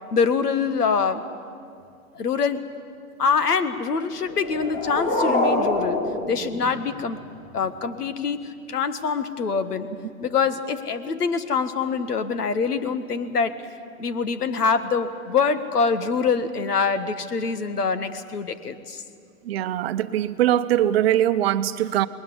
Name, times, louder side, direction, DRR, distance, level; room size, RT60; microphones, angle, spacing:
voice 1, 0.1-1.3 2.2-2.7 3.2-7.2 7.5-9.9 10.2-13.7 14.0-19.0, left 5 dB, 85° left, 11 dB, 1.7 m, -25 dB
sound 1, 4.3-7.3, left 2 dB, 20° left, 2.6 m, -25 dB
voice 2, 19.4-22.1, right 12 dB, 40° right, 12 dB, 0.9 m, -22 dB
20.0 x 20.0 x 9.8 m, 2.3 s
hypercardioid pair, 135°, 45 cm